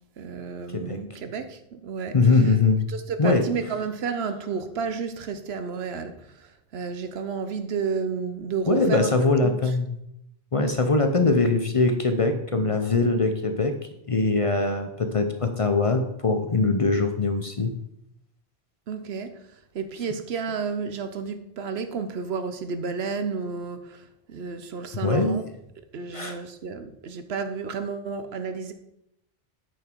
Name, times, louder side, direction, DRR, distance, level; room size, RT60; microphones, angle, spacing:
voice 1, 0.2-2.6 2.9-9.7 18.9-25.5 25.9-28.7, right 5 dB, 75° right, 1.0 m, -32 dB
voice 2, 2.1-2.8 3.2-3.4 8.7-9.9 10.5-13.7 14.1-17.7 25.0-25.4 26.1-26.4, left 3 dB, 35° left, 0.7 m, -22 dB
9.1 x 6.0 x 4.5 m
omnidirectional pair, 1.1 m